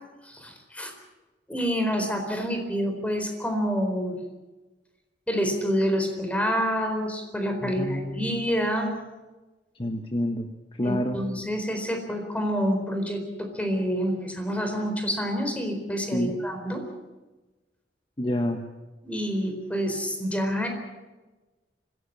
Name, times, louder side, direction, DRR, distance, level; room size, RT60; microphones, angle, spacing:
voice 1, 0.2-0.9 1.5-4.2 5.3-8.9 10.8-16.8 19.0-20.7, equal, 10° left, 4 dB, 4.2 m, -27 dB
voice 2, 7.6-8.4 9.8-11.2 16.1-16.4 18.2-18.6, left 1 dB, 30° left, 5 dB, 1.3 m, -28 dB
25.0 x 17.0 x 7.5 m, 1.2 s
head